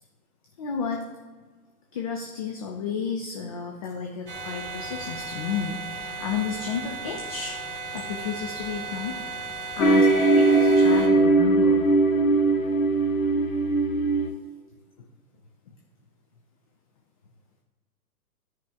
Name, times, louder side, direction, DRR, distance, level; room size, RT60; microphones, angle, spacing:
voice 1, 0.6-1.1 1.9-7.5 7.9-9.1 9.8-11.8, left 6 dB, 25° left, 1 dB, 0.5 m, -32 dB
sound 1, 4.3-11.1, right 3 dB, 25° right, 1.3 m, -36 dB
sound 2, 9.8-14.3, right 2 dB, 60° left, 1.0 m, -20 dB
12.5 x 5.0 x 3.4 m, 1.4 s
figure-of-eight pair, 110°, 47 cm